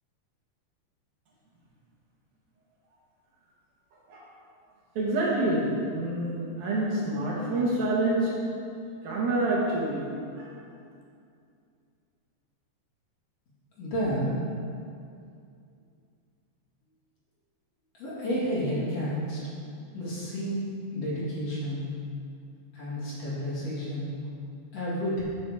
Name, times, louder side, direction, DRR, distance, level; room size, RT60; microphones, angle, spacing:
voice 1, 5.0-8.3 9.0-10.1 10.3-10.5, right 2 dB, 65° right, -5 dB, 3.0 m, -27 dB
voice 2, 13.8-14.4 18.0-19.4 19.9-20.6 20.9-21.9 22.7-24.1 24.7-25.2, equal, 40° left, -8 dB, 2.9 m, -30 dB
11.5 x 6.4 x 5.0 m, 2.4 s
omnidirectional pair, 5.1 m